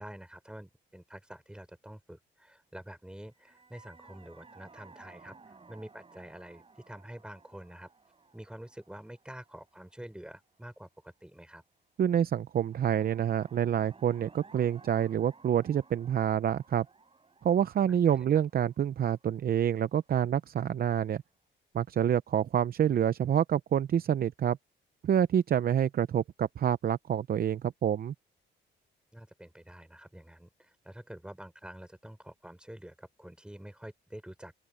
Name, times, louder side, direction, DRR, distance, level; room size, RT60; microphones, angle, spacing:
voice 1, 0.0-7.9 8.3-11.6 18.0-18.4 29.1-34.5, right 1 dB, 5° right, 6.6 m, -47 dB
sound 1, 3.3-10.6 12.5-20.3, right 4 dB, 30° right, 5.0 m, -58 dB
voice 2, 12.0-16.9 17.4-21.2 21.7-24.6 25.0-28.1, right 9 dB, 50° right, 0.6 m, -27 dB
open air
cardioid pair, 90°, 20 cm